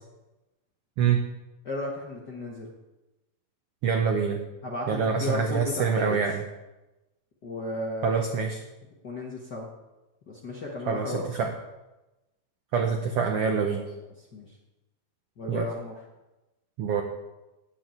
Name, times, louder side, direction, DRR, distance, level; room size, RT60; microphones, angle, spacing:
voice 1, 1.0-1.3 3.8-4.4 4.9-6.4 8.0-8.6 10.9-11.5 12.7-13.8 15.5-15.7 16.8-17.0, right 6 dB, 75° right, 4 dB, 1.4 m, -25 dB
voice 2, 1.6-2.7 4.6-4.9 5.2-6.2 7.4-8.3 9.0-9.7 10.3-11.2 14.3-14.6 15.4-15.9, left 2 dB, 50° left, -1 dB, 1.3 m, -34 dB
8.6 x 8.1 x 9.1 m, 1.0 s
omnidirectional pair, 3.9 m